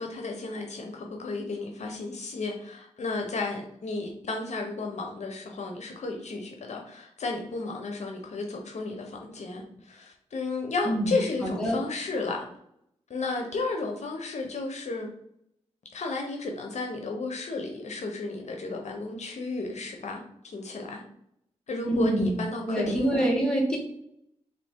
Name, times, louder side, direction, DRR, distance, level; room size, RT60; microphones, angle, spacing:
voice 1, 0.0-12.4 13.1-15.1 15.9-21.0 21.7-23.3, left 3 dB, 70° left, 2 dB, 0.7 m, -33 dB
voice 2, 10.8-11.8 21.9-22.4 22.7-23.8, right 1 dB, 5° left, -2 dB, 1.7 m, -26 dB
4.1 x 2.8 x 3.5 m, 0.73 s
cardioid pair, 65°, 12 cm